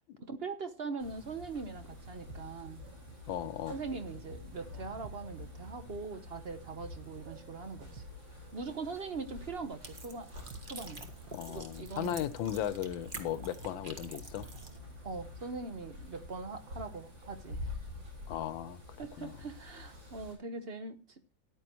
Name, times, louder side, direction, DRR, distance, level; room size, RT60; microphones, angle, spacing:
voice 1, 0.2-2.8 3.7-8.0 8.5-10.3 10.6-11.0 11.5-12.2 13.3-13.4 15.0-17.8 19.0-21.2, right 4 dB, 45° right, 0.9 m, -41 dB
sound 1, 1.0-20.4, left 2 dB, 80° right, 5.1 m, -48 dB
sound 2, 2.3-2.7 5.0-5.4 8.0-8.3 10.5-10.9, right 2 dB, 60° right, 1.4 m, -49 dB
voice 2, 3.3-3.8 11.3-14.5 18.3-18.8 19.2-19.3, left 10 dB, 85° left, 1.5 m, -36 dB
sound 3, 9.8-14.8, right 2 dB, 30° right, 1.5 m, -48 dB
14.0 x 10.5 x 3.0 m
omnidirectional pair, 2.1 m